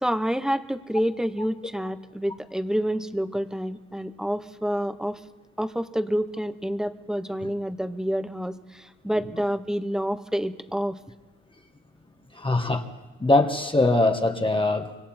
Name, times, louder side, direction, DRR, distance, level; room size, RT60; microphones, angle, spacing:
voice 1, 0.0-5.2 5.6-11.0, equal, ahead, 10 dB, 1.1 m, -28 dB
voice 2, 12.3-12.9 13.2-14.9, left 2 dB, 15° left, 4 dB, 1.6 m, -22 dB
26.0 x 24.5 x 4.5 m, 1.1 s
cardioid pair, 90°, 30 cm